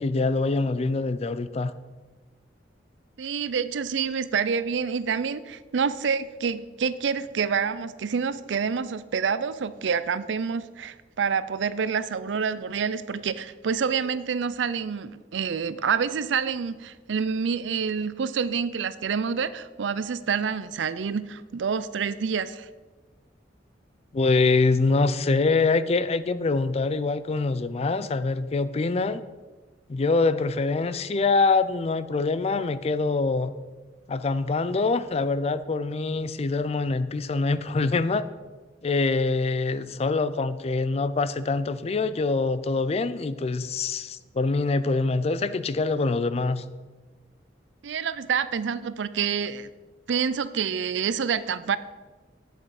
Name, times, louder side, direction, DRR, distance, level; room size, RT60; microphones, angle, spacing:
voice 1, 0.0-1.7 24.1-29.2 29.9-33.5 34.1-38.3 38.8-46.6, left 3 dB, 35° left, 14 dB, 0.4 m, -24 dB
voice 2, 3.2-22.7 47.8-49.7 50.1-51.8, right 6 dB, 85° right, 15 dB, 0.4 m, -27 dB
8.3 x 7.5 x 4.9 m, 1.3 s
head